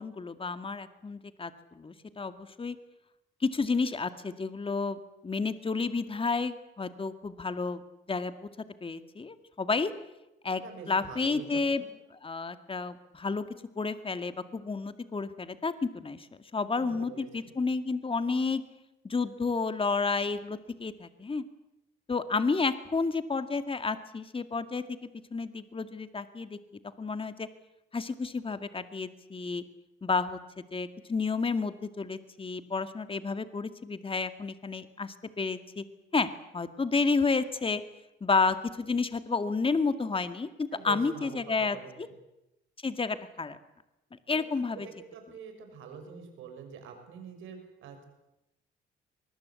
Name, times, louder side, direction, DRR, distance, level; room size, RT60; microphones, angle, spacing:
voice 1, 0.0-2.8 3.4-7.8 8.1-8.5 8.8-9.9 10.4-10.6 10.9-11.8 12.2-13.5 13.8-16.3 16.5-18.6 19.0-21.4 22.1-24.8 25.3-26.6 27.0-27.5 27.9-29.6 30.0-35.8 36.1-37.8 38.2-41.8 42.8-43.6 44.3-44.9, left 4 dB, 25° left, 10 dB, 2.1 m, -31 dB
voice 2, 10.6-11.9 16.7-17.5 40.7-42.1 44.3-48.0, right 6 dB, 90° right, 5 dB, 6.2 m, -46 dB
25.0 x 20.5 x 8.5 m, 0.92 s
cardioid pair, 90°, 20 cm